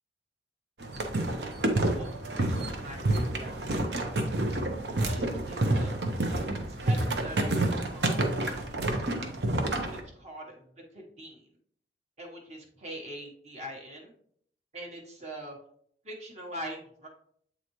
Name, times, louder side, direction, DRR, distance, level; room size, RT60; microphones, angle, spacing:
sound 1, 0.8-10.0, right 1 dB, 70° right, 0.9 m, -29 dB
voice 1, 1.7-4.1 4.9-6.1 6.8-8.6 8.9-9.4 9.8-10.6 10.9-11.5 12.2-14.1 14.7-15.6 16.0-17.1, right 1 dB, 40° right, 0 dB, 1.1 m, -43 dB
8.1 x 4.0 x 3.1 m, 0.64 s
head